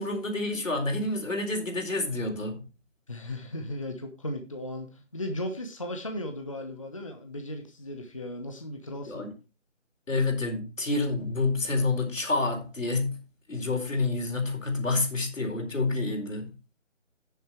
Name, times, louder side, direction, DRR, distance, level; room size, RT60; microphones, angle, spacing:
voice 1, 0.0-2.6 9.0-9.3 10.1-13.2 13.5-16.5, left 3 dB, 90° left, 4.4 m, -28 dB
voice 2, 3.1-9.2, left 1 dB, 25° left, 1.0 m, -36 dB
10.5 x 7.1 x 4.5 m
figure-of-eight pair, 175°, 37 cm